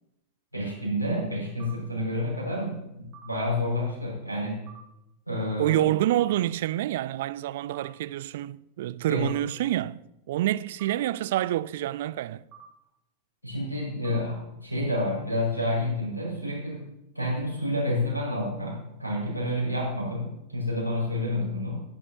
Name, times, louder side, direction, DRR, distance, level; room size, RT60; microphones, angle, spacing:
voice 1, 0.5-4.6 5.3-5.9 9.1-9.3 13.4-16.8 17.1-21.8, left 1 dB, 90° left, 6.0 m, -29 dB
sound 1, 1.6-1.7 3.1-3.3 4.7-4.8 6.2-6.3 7.7-7.9 9.3-9.4 10.8-10.9 12.5-12.7 14.0-14.2, right 11 dB, 35° right, 2.2 m, -47 dB
voice 2, 5.6-12.4, right 14 dB, 55° right, 0.3 m, -27 dB
19.5 x 11.0 x 2.9 m
figure-of-eight pair, 90°, 0 cm